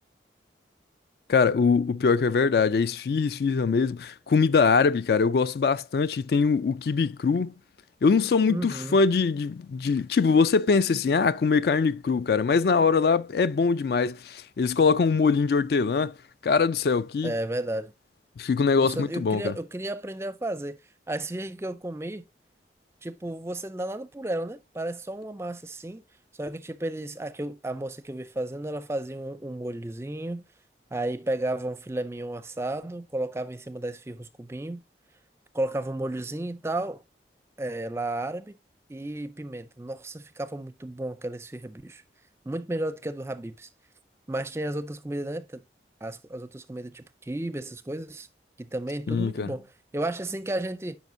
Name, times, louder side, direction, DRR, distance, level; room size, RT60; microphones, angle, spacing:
voice 1, 1.3-7.5 8.0-16.1 16.4-17.3 18.4-19.5 49.1-49.5, left 5 dB, 60° left, 0.3 m, -23 dB
voice 2, 8.5-9.0 17.2-17.9 18.8-20.8 21.1-22.2 23.0-26.0 26.3-30.4 30.9-34.8 35.5-37.0 37.6-38.6 38.9-42.0 42.5-43.7 44.3-45.6 46.0-48.3 48.6-51.0, right 1 dB, 15° right, 0.4 m, -33 dB
9.2 x 5.3 x 2.6 m
head